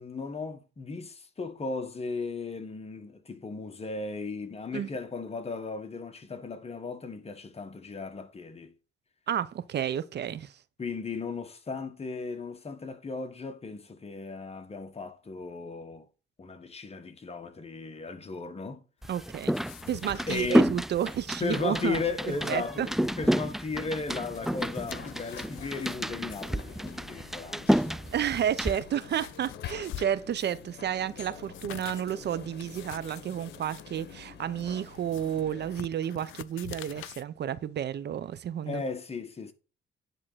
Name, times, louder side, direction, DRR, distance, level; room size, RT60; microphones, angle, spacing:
voice 1, 0.0-8.7 10.8-16.1 16.4-18.8 20.3-20.7 21.4-27.9 38.7-39.5, left 4 dB, 30° left, 1.6 m, -36 dB
voice 2, 9.3-10.5 19.1-19.5 19.9-22.0 22.3-22.9 28.1-38.8, right 9 dB, 60° right, 0.8 m, -31 dB
sound 1, 19.0-20.6 20.9-21.3 21.6-21.7 22.1-23.2 23.7-26.0 26.3-26.6 27.4-27.5 28.0-30.7 31.0-37.2, left 14 dB, 80° left, 0.5 m, -46 dB
sound 2, 19.0-28.7, equal, ahead, 0.4 m, -30 dB
sound 3, 24.3-35.9, left 6 dB, 60° left, 1.6 m, -48 dB
10.0 x 3.8 x 7.4 m
cardioid pair, 90°, 20 cm